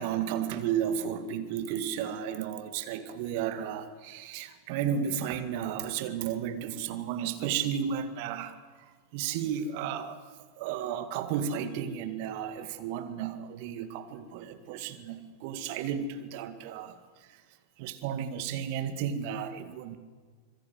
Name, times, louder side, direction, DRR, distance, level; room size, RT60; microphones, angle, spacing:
voice 1, 0.0-8.5 9.1-10.2 10.6-17.0 17.8-20.0, right 8 dB, 45° right, 1.9 m, -33 dB
25.5 x 22.5 x 8.0 m
figure-of-eight pair, 90°, 0 cm